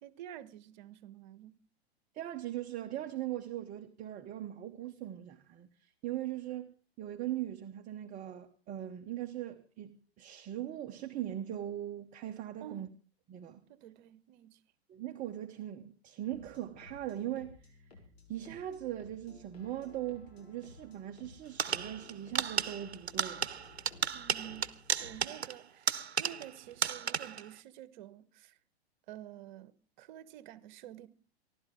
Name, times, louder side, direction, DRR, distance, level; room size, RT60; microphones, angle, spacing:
voice 1, 0.0-1.6 12.6-12.9 13.7-14.6 24.1-28.6 29.1-31.1, right 12 dB, 45° right, 1.2 m, -49 dB
voice 2, 2.1-12.9 13.3-13.6 14.9-17.8 18.3-23.5, right 12 dB, 25° right, 0.9 m, -40 dB
sound 1, 16.3-25.2, left 4 dB, 75° left, 7.2 m, -57 dB
sound 2, 21.6-26.6 26.8-27.5, right 7 dB, 80° right, 0.8 m, -34 dB
28.5 x 12.0 x 3.8 m
figure-of-eight pair, 105°, 32 cm